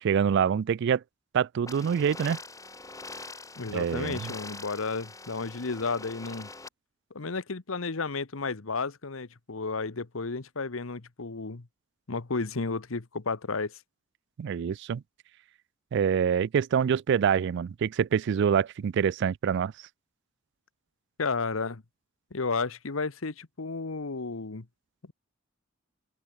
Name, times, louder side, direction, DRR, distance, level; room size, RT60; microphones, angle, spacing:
voice 1, 0.0-1.0 1.3-2.4 3.7-4.3 14.4-15.0 15.9-19.7, right 7 dB, 60° right, 0.3 m, -26 dB
sound 1, 1.7-6.7, left 3 dB, 15° left, 4.6 m, -44 dB
voice 2, 3.6-6.5 7.1-11.7 12.1-13.8 21.2-21.8 22.3-24.6, left 4 dB, 80° left, 1.1 m, -32 dB
open air
head